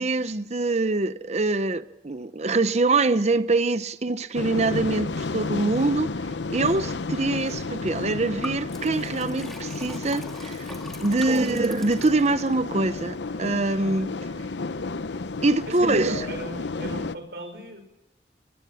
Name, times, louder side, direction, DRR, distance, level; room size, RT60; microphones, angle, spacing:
voice 1, 0.0-6.1 6.5-10.6 11.0-14.1 15.4-16.3, right 3 dB, 40° right, 0.8 m, -24 dB
sound 1, 4.3-17.1, left 3 dB, 90° left, 0.8 m, -32 dB
Liquid, 8.4-12.6, equal, ahead, 2.6 m, -42 dB
voice 2, 15.7-17.8, equal, 65° right, 5.4 m, -38 dB
23.5 x 21.5 x 5.7 m
head